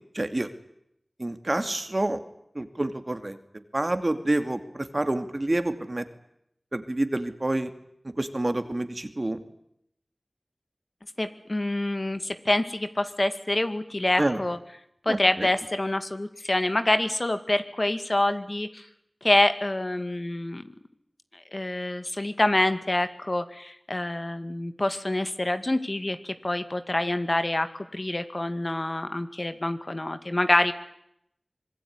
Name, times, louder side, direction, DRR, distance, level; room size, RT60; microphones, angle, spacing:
voice 1, 0.1-0.5 1.2-2.2 2.5-3.4 3.7-6.0 6.7-7.7 8.2-9.4 14.2-14.4 15.1-15.5, right 1 dB, 45° right, 9 dB, 2.6 m, -28 dB
voice 2, 11.2-14.6 15.1-18.8 19.2-20.7 21.5-27.7 27.9-30.7, left 1 dB, 45° left, 10 dB, 2.2 m, -26 dB
25.5 x 21.5 x 9.7 m, 0.75 s
wide cardioid pair, 50°, 0 cm